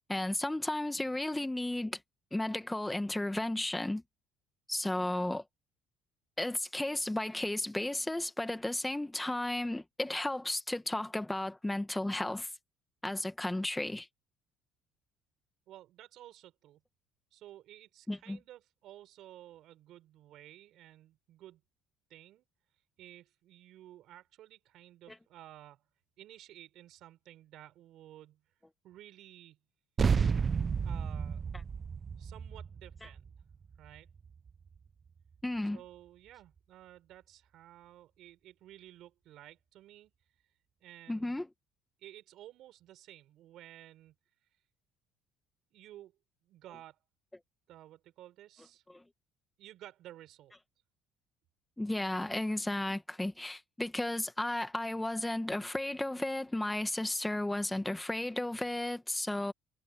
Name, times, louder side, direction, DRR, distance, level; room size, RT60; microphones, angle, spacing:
voice 1, 0.1-2.0 2.3-4.0 4.7-5.4 6.4-12.5 13.0-14.1 18.1-18.4 35.4-35.8 41.1-41.5 48.9-49.0 51.8-59.5, left 1 dB, 10° left, 2.0 m, -34 dB
voice 2, 15.7-16.8 17.3-21.6 22.1-22.4 23.0-25.8 26.2-28.4 28.8-29.6 30.8-31.4 32.2-33.3 33.8-34.1 35.7-40.1 40.8-41.3 42.0-44.1 45.7-46.1 46.4-47.0 47.7-48.8 49.6-50.5, right 13 dB, 65° right, 4.9 m, -54 dB
sound 1, 30.0-34.8, right 6 dB, 35° right, 0.8 m, -32 dB
supercardioid pair, 80°, 0 cm